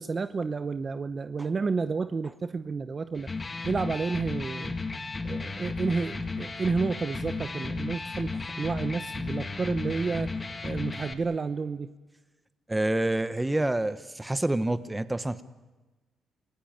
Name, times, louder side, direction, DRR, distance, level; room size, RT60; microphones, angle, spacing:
voice 1, 0.0-3.3 3.6-4.8 5.3-8.3 8.6-10.3 10.6-11.9, right 4 dB, 35° right, 11 dB, 0.8 m, -30 dB
Electric guitar, 3.1-11.1, left 3 dB, 25° left, 1.8 m, -34 dB
voice 2, 12.7-15.4, right 1 dB, 10° right, 12 dB, 1.2 m, -27 dB
28.5 x 17.0 x 9.0 m, 1.2 s
cardioid pair, 90°, 0 cm